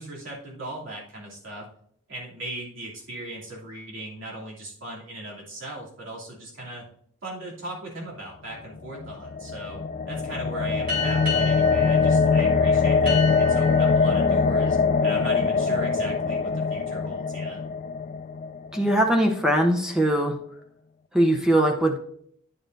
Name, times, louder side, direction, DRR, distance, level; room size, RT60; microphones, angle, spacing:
voice 1, 0.0-1.7 2.1-6.8 7.2-9.8 10.1-17.6, right 1 dB, 70° right, -5 dB, 2.9 m, -38 dB
sound 1, 8.9-19.0, left 5 dB, 45° left, 0.4 m, -23 dB
sound 2, 10.9-16.0, left 2 dB, 45° right, 3.7 m, -34 dB
voice 2, 18.7-20.4 21.1-22.0, right 1 dB, 5° right, 2 dB, 0.7 m, -21 dB
9.9 x 7.1 x 2.6 m, 0.64 s
head